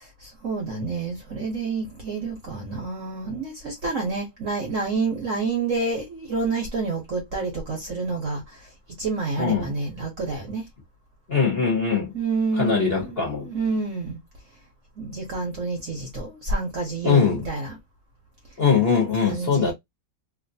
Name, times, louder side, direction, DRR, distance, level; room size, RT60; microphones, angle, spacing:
voice 1, 0.2-8.7 9.0-10.7 12.1-14.2 15.0-17.8 19.3-19.7, right 3 dB, 55° right, 1.0 m, -28 dB
voice 2, 9.4-9.7 11.3-12.1 12.5-13.5 17.0-17.4 18.6-19.7, left 6 dB, 40° left, 0.9 m, -21 dB
3.1 x 2.5 x 2.6 m
omnidirectional pair, 2.2 m